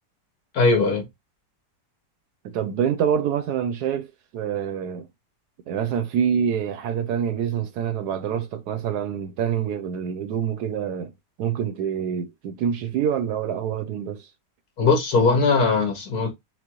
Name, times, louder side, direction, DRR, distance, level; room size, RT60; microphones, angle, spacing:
voice 1, 0.5-1.0 14.8-16.3, left 4 dB, 60° left, 1.7 m, -19 dB
voice 2, 2.4-5.1 5.7-11.1 11.4-14.3, right 8 dB, 70° right, 1.1 m, -26 dB
6.0 x 2.4 x 2.9 m
omnidirectional pair, 1.9 m